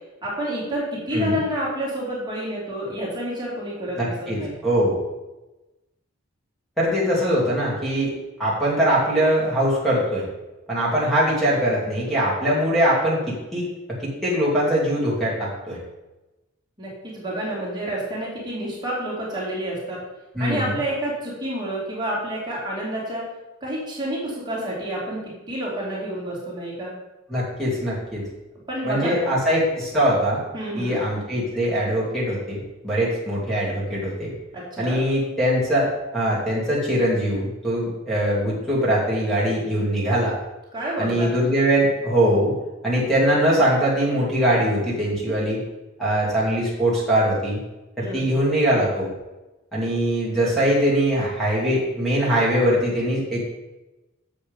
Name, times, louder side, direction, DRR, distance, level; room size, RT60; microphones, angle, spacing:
voice 1, 0.2-4.6 16.8-20.0 20.4-23.2 23.6-25.2 25.5-26.9 28.7-29.3 30.5-31.0 34.5-35.0 40.7-41.3 48.0-48.4, right 1 dB, 20° right, -5 dB, 2.5 m, -29 dB
voice 2, 3.9-5.0 6.8-8.1 8.4-10.3 10.7-15.8 20.3-20.7 27.3-28.2 28.8-30.4 30.8-34.3 34.8-40.3 41.0-42.5 42.8-45.6 46.0-47.6 48.0-49.1 49.7-53.4, equal, ahead, -7 dB, 2.4 m, -22 dB
7.2 x 7.1 x 5.2 m, 1.0 s
head